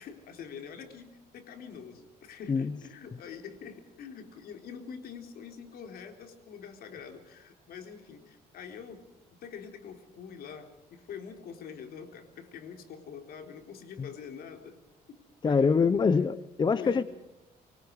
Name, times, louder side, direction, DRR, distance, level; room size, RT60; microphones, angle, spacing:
voice 1, 0.0-9.0 9.3-14.8 15.1-15.2 15.4-15.8 16.8-17.0, left 7 dB, 65° left, 5 dB, 4.0 m, -45 dB
voice 2, 15.4-17.0, left 5 dB, 25° left, 14 dB, 0.8 m, -24 dB
25.0 x 24.5 x 4.8 m, 0.93 s
cardioid pair, 110°, 17 cm